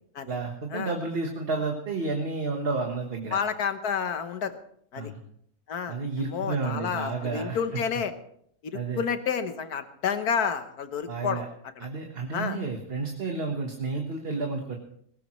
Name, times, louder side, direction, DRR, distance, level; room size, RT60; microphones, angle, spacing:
voice 1, 0.2-3.4 5.0-5.2 5.9-7.8 8.7-9.0 11.1-11.5 11.8-14.8, right 3 dB, 40° right, 2 dB, 1.5 m, -31 dB
voice 2, 3.3-4.5 4.9-5.1 5.7-6.0 6.3-8.1 8.6-11.4 11.8-11.9 12.3-12.6, left 7 dB, 80° left, 10 dB, 1.6 m, -30 dB
19.5 x 17.5 x 3.2 m, 0.67 s
omnidirectional pair, 1.6 m